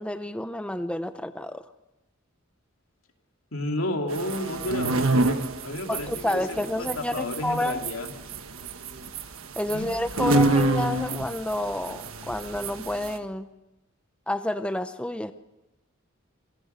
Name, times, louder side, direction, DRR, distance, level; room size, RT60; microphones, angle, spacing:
voice 1, 0.0-1.6 5.9-7.8 9.6-13.5 14.3-15.3, left 1 dB, 5° left, 10 dB, 0.7 m, -29 dB
voice 2, 3.5-8.1 9.7-9.9, left 1 dB, 80° left, 3 dB, 2.7 m, -32 dB
sound 1, 4.1-13.2, right 2 dB, 90° right, 1.4 m, -28 dB
26.5 x 16.5 x 6.8 m, 0.97 s
head